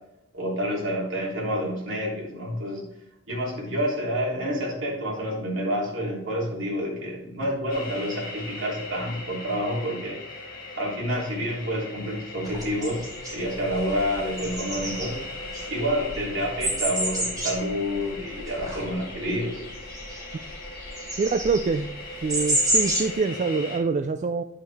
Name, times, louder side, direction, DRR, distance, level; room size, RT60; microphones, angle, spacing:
voice 1, 0.3-2.8 3.3-10.2 10.8-15.2 15.7-19.6, equal, 70° right, -4 dB, 3.2 m, -28 dB
sound 1, 7.7-23.8, left 2 dB, 45° left, 1.9 m, -39 dB
sound 2, 12.4-23.1, right 1 dB, 20° right, 2.5 m, -30 dB
voice 2, 21.2-21.9 22.2-24.4, right 4 dB, 35° right, 8 dB, 0.3 m, -25 dB
8.8 x 6.3 x 3.5 m, 0.85 s
head